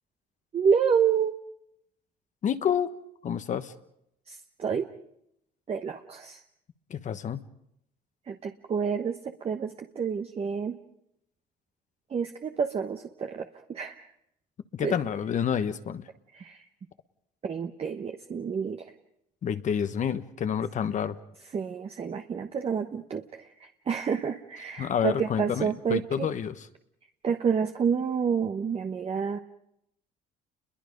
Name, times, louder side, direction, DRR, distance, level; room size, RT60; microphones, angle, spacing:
voice 1, 0.5-1.3 4.3-4.9 5.7-6.4 8.3-10.8 12.1-14.0 14.8-15.0 16.3-16.6 17.4-18.9 21.5-26.3 27.2-29.4, right 6 dB, 35° right, 6 dB, 1.1 m, -29 dB
voice 2, 2.4-2.9 3.2-3.7 6.9-7.4 14.7-16.0 19.4-21.1 24.8-26.7, left 8 dB, 45° left, 10 dB, 1.2 m, -28 dB
29.5 x 22.0 x 5.3 m, 0.77 s
cardioid pair, 110°, 17 cm